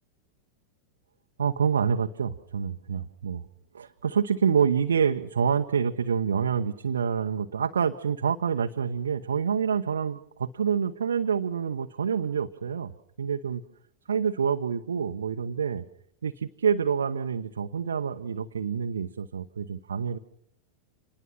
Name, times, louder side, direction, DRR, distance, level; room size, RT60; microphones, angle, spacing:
voice 1, 1.4-3.4 3.7-12.9 13.2-13.6 14.1-15.8 16.2-20.2, right 7 dB, 70° right, 4 dB, 1.0 m, -27 dB
26.5 x 20.5 x 5.8 m, 0.63 s
figure-of-eight pair, 90°, 0 cm